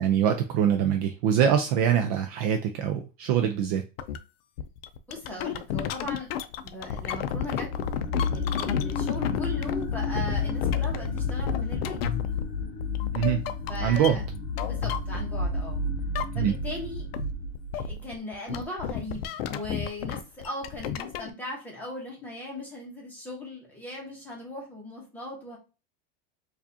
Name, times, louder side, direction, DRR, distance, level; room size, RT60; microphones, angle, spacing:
voice 1, 0.0-3.8 13.1-13.4 13.8-14.2 16.3-16.5, right 9 dB, 40° right, 5 dB, 0.4 m, -24 dB
sound 1, 4.0-4.2 4.6-15.6 15.9-16.7 17.0-21.3, left 9 dB, 70° left, 0.5 m, -32 dB
voice 2, 5.1-6.3 6.6-7.7 8.3-12.0 13.7-14.2 14.6-15.8 16.3-17.1 17.7-25.6, left 1 dB, 5° left, -3 dB, 1.0 m, -38 dB
sound 2, 7.5-18.1, left 4 dB, 35° left, 0.8 m, -31 dB
4.7 x 2.5 x 2.7 m, 0.31 s
supercardioid pair, 170°, 30 cm